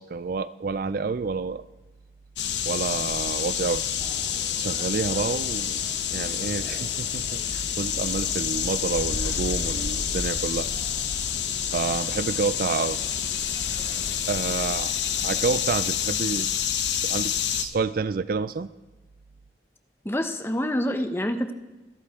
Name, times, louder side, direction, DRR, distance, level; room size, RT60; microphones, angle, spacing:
voice 1, 0.0-1.6 2.7-3.8 4.6-5.8 6.1-10.7 11.7-13.0 14.3-14.9 15.2-16.5 17.0-17.3 17.6-18.7, right 4 dB, 55° right, 16 dB, 0.4 m, -29 dB
sound 1, 2.4-17.6, left 8 dB, 85° left, 1.1 m, -28 dB
sound 2, 4.0-16.1, left 1 dB, 30° left, 2.0 m, -48 dB
voice 2, 20.0-21.5, equal, 15° left, 7 dB, 0.9 m, -27 dB
25.0 x 11.0 x 3.6 m, 1.2 s
head